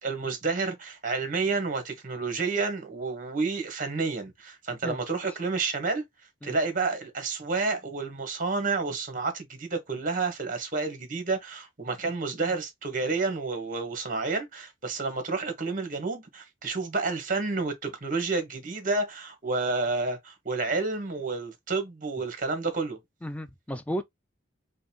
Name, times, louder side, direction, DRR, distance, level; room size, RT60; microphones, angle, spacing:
voice 1, 0.0-6.0 6.4-23.0, right 3 dB, 45° right, 1.2 m, -30 dB
voice 2, 23.2-24.0, equal, 5° left, 0.4 m, -33 dB
5.0 x 2.3 x 2.8 m
head